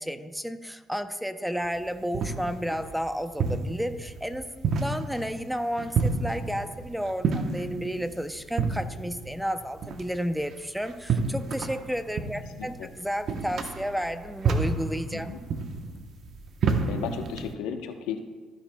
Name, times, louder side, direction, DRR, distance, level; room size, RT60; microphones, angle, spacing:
voice 1, 0.0-15.3, equal, ahead, 9 dB, 0.6 m, -32 dB
sound 1, 1.6-17.5, right 4 dB, 55° right, 0.9 m, -31 dB
voice 2, 12.6-12.9 15.1-15.4 16.9-18.2, left 7 dB, 90° left, 5 dB, 0.9 m, -34 dB
14.5 x 10.0 x 2.3 m, 1.4 s
cardioid pair, 100°, 0 cm